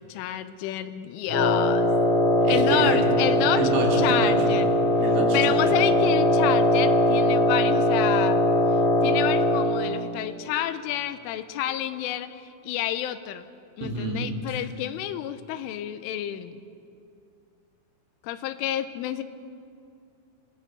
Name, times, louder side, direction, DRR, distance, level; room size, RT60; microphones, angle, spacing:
voice 1, 0.0-1.9 2.5-3.6 4.0-4.7 5.3-8.4 9.0-12.3 12.6-13.4 13.8-16.6 18.2-19.2, left 12 dB, 85° left, 11 dB, 3.2 m, -29 dB
Wind instrument woodwind instrument, 1.3-9.8, left 1 dB, 35° left, 1.0 m, -21 dB
voice 2, 2.5-3.0 3.6-4.3 5.0-5.6 13.8-14.3, right 3 dB, 85° right, 0 dB, 5.5 m, -28 dB
24.5 x 17.5 x 6.8 m, 2.5 s
omnidirectional pair, 5.7 m